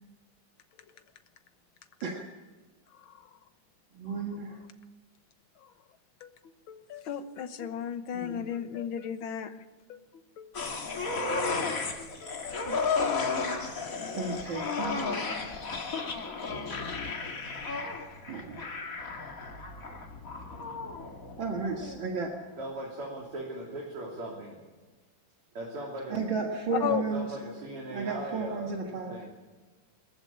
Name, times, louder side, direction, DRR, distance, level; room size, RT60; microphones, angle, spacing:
voice 1, 2.9-3.4 5.6-5.7 6.2-9.6 9.9-10.8 12.0-12.9 14.0-14.4 26.7-27.0, left 10 dB, 70° left, 10 dB, 1.9 m, -37 dB
voice 2, 3.9-4.6 8.1-8.5 14.1-15.3 18.3-18.9 21.4-22.3 26.1-27.4 27.9-29.1, right 4 dB, 60° right, 1 dB, 2.3 m, -33 dB
sound 1, 10.5-22.1 22.4-22.5, left 4 dB, 40° left, 2.1 m, -33 dB
voice 3, 22.6-24.6 25.5-26.2 26.9-28.7 29.0-29.3, right 2 dB, 90° right, -3 dB, 4.0 m, -38 dB
22.5 x 14.5 x 8.6 m, 1.3 s
omnidirectional pair, 2.4 m